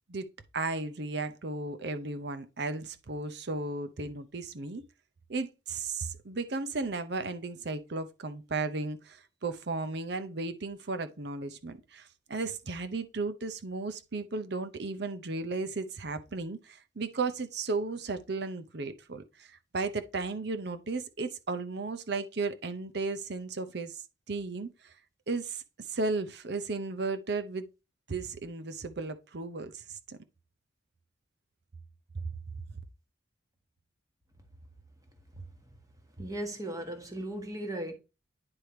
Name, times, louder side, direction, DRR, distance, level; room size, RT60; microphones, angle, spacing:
voice 1, 0.5-4.8 5.3-24.0 24.3-24.9 25.3-27.7 28.1-30.2 32.1-32.2, right 3 dB, 60° right, 0.8 m, -35 dB
voice 2, 35.3-35.7 36.2-37.9, right 1 dB, 20° right, 1.4 m, -37 dB
9.7 x 3.4 x 4.4 m
head